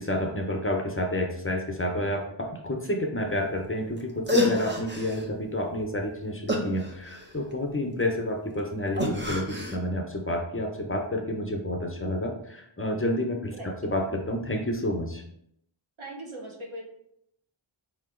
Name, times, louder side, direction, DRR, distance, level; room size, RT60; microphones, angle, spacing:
voice 1, 0.0-15.2, left 1 dB, 25° left, 2 dB, 0.7 m, -30 dB
sound 1, 4.0-4.1 4.3-5.3 6.5-7.5 9.0-9.8, left 1 dB, 20° right, 0.8 m, -28 dB
voice 2, 16.0-16.8, right 1 dB, 80° right, -1 dB, 1.2 m, -39 dB
4.4 x 2.8 x 3.7 m, 0.73 s
wide cardioid pair, 45°, 49 cm